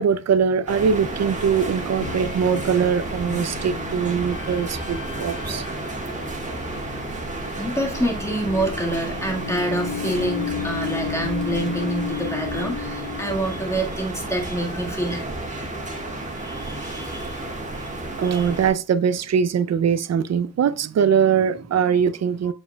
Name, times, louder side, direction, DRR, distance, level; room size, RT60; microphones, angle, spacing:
voice 1, 0.0-5.7 18.2-22.5, right 7 dB, 55° right, 0.5 m, -22 dB
sound 1, 0.7-18.7, right 2 dB, 20° right, 1.5 m, -32 dB
sound 2, 2.0-14.1, left 8 dB, 75° left, 0.8 m, -34 dB
voice 2, 7.5-15.2 16.4-17.4 17.8-17.9 18.2-18.5, right 1 dB, 10° left, 1.6 m, -27 dB
7.4 x 7.0 x 2.2 m
wide cardioid pair, 135°, 33 cm